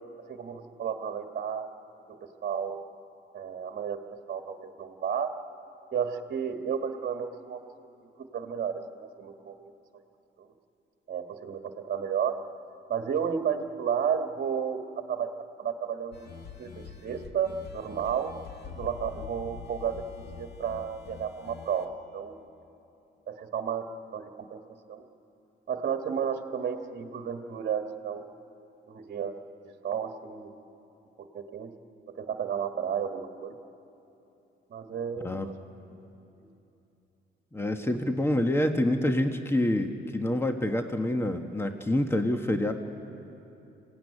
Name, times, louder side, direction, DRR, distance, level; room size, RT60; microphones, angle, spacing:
voice 1, 0.3-1.7 2.1-2.8 3.3-4.0 4.3-5.3 5.9-7.6 8.3-9.7 10.4-10.5 11.1-12.4 12.9-15.3 15.6-18.3 18.7-22.5 23.3-23.8 24.1-24.6 24.9-25.0 25.7-28.3 28.9-29.3 29.8-30.5 31.2-31.7 32.1-33.6 34.7-35.5 36.4-36.5, right 7 dB, 55° right, 5 dB, 1.6 m, -32 dB
sound 1, 16.1-21.9, left 7 dB, 55° left, 1.8 m, -45 dB
voice 2, 37.5-42.7, left 1 dB, 10° left, 6 dB, 1.4 m, -27 dB
26.0 x 17.0 x 9.9 m, 2.9 s
cardioid pair, 90°, 20 cm